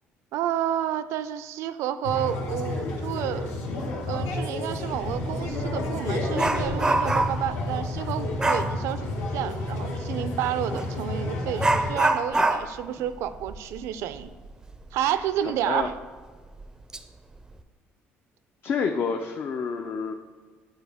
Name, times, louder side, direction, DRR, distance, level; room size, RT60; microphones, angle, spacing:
voice 1, 0.3-3.6 4.1-14.3 14.9-15.9, right 11 dB, 75° right, 13 dB, 0.4 m, -30 dB
sound 1, 2.0-11.9, left 2 dB, 70° left, 1.3 m, -30 dB
Dog, 5.0-5.2 5.6-7.5 8.4-8.8 10.7-10.9 11.6-14.9 15.2-15.3 15.8-15.9 16.6-17.0 17.4-17.6, right 2 dB, 15° right, 0.4 m, -26 dB
voice 2, 15.4-15.9 18.6-20.1, left 5 dB, 50° left, 4 dB, 0.5 m, -28 dB
8.9 x 4.4 x 3.5 m, 1.4 s
cardioid pair, 105°, 5 cm